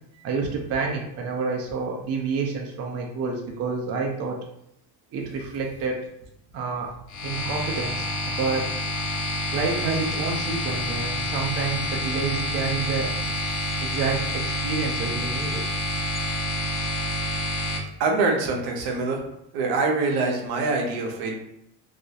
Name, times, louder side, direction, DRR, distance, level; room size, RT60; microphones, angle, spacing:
voice 1, 0.2-4.4 5.1-6.0 6.5-6.9 7.2-8.7 9.5-13.2 13.8-15.6, right 4 dB, 40° right, 0 dB, 0.5 m, -29 dB
sound 1, 7.1-17.8, left 1 dB, 50° left, 0.7 m, -28 dB
voice 2, 18.0-19.2 19.5-21.3, right 3 dB, 80° right, 1 dB, 0.7 m, -24 dB
2.3 x 2.1 x 2.7 m, 0.78 s
cardioid pair, 115°, 39 cm